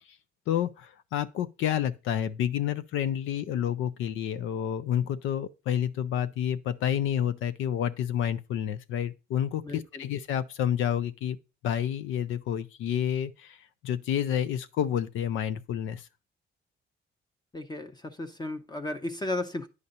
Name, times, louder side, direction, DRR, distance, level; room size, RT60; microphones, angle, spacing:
voice 1, 0.5-11.4 11.6-16.1, left 10 dB, 80° left, 0.5 m, -29 dB
voice 2, 9.6-10.0 17.5-19.7, left 2 dB, 20° left, 0.7 m, -34 dB
9.6 x 6.4 x 2.8 m
cardioid pair, 90°, 20 cm